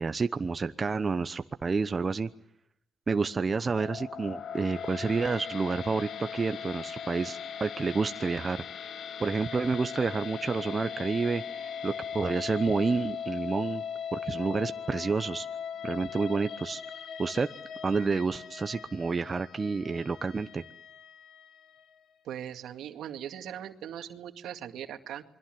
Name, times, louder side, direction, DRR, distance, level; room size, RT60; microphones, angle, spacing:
voice 1, 0.0-2.3 3.1-8.6 9.2-13.8 14.1-15.5 15.8-16.8 17.2-17.5 17.8-20.6, right 4 dB, 30° right, 9 dB, 0.9 m, -29 dB
sound 1, 3.7-21.9, left 7 dB, 65° left, 1.4 m, -39 dB
voice 2, 22.2-25.2, right 10 dB, 80° right, 7 dB, 2.1 m, -40 dB
28.0 x 22.0 x 7.7 m, 0.76 s
cardioid pair, 90°, 0 cm